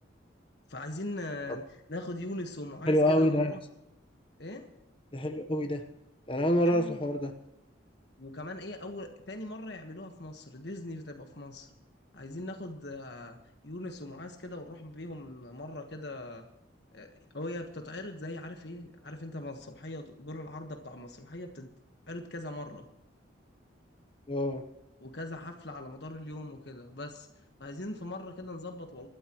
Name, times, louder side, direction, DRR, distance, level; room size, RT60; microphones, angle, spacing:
voice 1, 0.7-3.6 4.4-4.6 6.6-7.0 8.2-11.7 12.1-13.4 13.6-16.4 16.9-21.7 22.1-22.8 25.0-27.3 27.6-29.1, left 1 dB, 60° left, 4 dB, 1.4 m, -41 dB
voice 2, 2.9-3.5 5.1-5.8 6.3-7.3 24.3-24.6, left 1 dB, 25° left, 5 dB, 1.1 m, -26 dB
26.0 x 12.5 x 3.1 m, 0.84 s
head